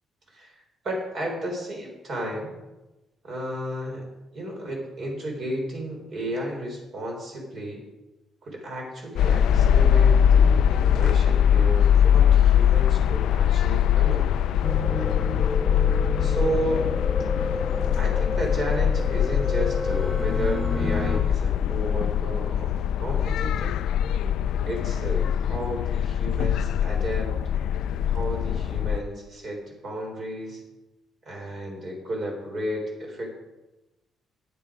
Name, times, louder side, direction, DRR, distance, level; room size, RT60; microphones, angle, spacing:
voice 1, 0.8-2.5 3.2-4.1 4.3-7.8 8.4-14.4 16.2-16.9 18.0-23.8 24.6-27.3 28.0-30.6 31.2-33.4, right 1 dB, 40° right, 0 dB, 4.3 m, -33 dB
sound 1, 9.2-29.0, left 9 dB, 70° left, 0.4 m, -22 dB
sound 2, 14.6-21.2, left 2 dB, 10° right, 1.6 m, -31 dB
13.0 x 9.9 x 5.1 m, 1.0 s
cardioid pair, 155°, 0 cm